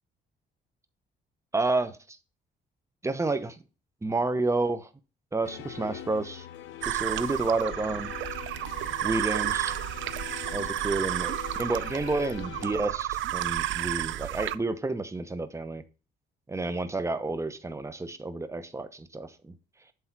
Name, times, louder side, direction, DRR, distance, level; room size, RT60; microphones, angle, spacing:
voice 1, 1.5-2.2 3.0-3.6 4.0-4.9 5.3-6.5 6.8-8.1 9.0-9.7 10.5-15.8 16.5-19.5, right 3 dB, 15° right, 0.9 m, -30 dB
sound 1, 5.4-12.8, left 11 dB, 75° left, 0.8 m, -42 dB
sound 2, 6.8-14.6, right 14 dB, 75° right, 0.5 m, -32 dB
8.0 x 3.6 x 6.0 m
cardioid pair, 90°, 20 cm